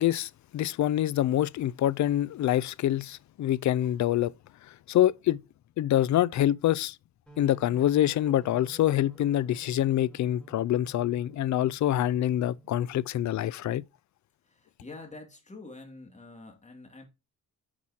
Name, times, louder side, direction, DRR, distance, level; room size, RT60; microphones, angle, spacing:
voice 1, 0.0-4.3 4.9-5.4 5.8-7.0 7.4-13.8, left 12 dB, 60° left, 0.4 m, -26 dB
sound 1, 7.3-12.8, right 3 dB, ahead, 3.8 m, -53 dB
voice 2, 14.4-17.0, left 3 dB, 20° left, 2.5 m, -46 dB
9.8 x 6.1 x 2.8 m
cardioid pair, 125°, 33 cm